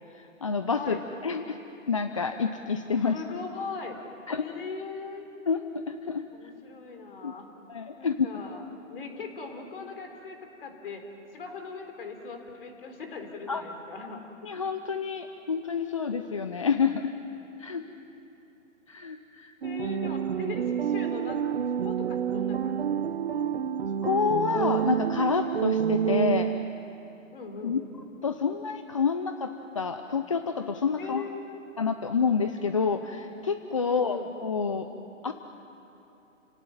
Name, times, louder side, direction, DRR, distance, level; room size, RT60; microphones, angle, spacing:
voice 1, 0.1-1.0 1.2-1.6 1.9-3.2 4.3-4.5 5.5-6.2 7.2-7.3 7.7-8.3 13.5-13.6 14.4-17.1 17.6-17.8 18.9-19.5 24.0-26.5 27.6-27.8 28.2-31.3 31.8-34.9 35.2-35.3, left 5 dB, 25° left, 8 dB, 0.5 m, -28 dB
voice 2, 3.1-4.0 4.4-5.3 6.3-7.5 8.0-8.6 8.9-11.0 11.3-14.2 17.7-17.8 19.6-21.4 21.8-23.5 27.3-27.8 31.0-31.6 33.8-34.3, left 5 dB, 45° left, 4 dB, 4.1 m, -40 dB
sound 1, 19.6-26.9, right 8 dB, 50° right, 1.0 m, -28 dB
29.0 x 17.5 x 9.1 m, 3.0 s
hypercardioid pair, 150°, 40 cm